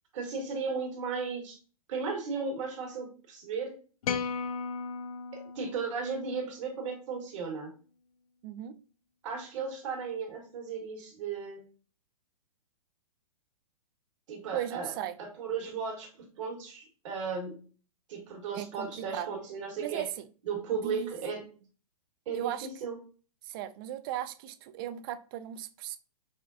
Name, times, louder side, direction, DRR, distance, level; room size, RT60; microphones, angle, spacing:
voice 1, 0.1-1.6 1.9-3.8 5.3-7.7 9.2-11.6 14.3-14.9 15.2-16.1 16.4-17.6 18.1-20.1 20.4-21.4 22.3-23.0, right 5 dB, 55° right, 1.4 m, -35 dB
sound 1, 4.0-6.4, left 6 dB, 70° left, 0.4 m, -36 dB
voice 2, 8.4-8.7 14.5-15.2 18.5-19.3 19.8-20.1 20.8-21.1 22.3-22.7 23.4-26.0, right 11 dB, 40° right, 0.4 m, -36 dB
4.9 x 2.2 x 2.5 m
hypercardioid pair, 125°, 19 cm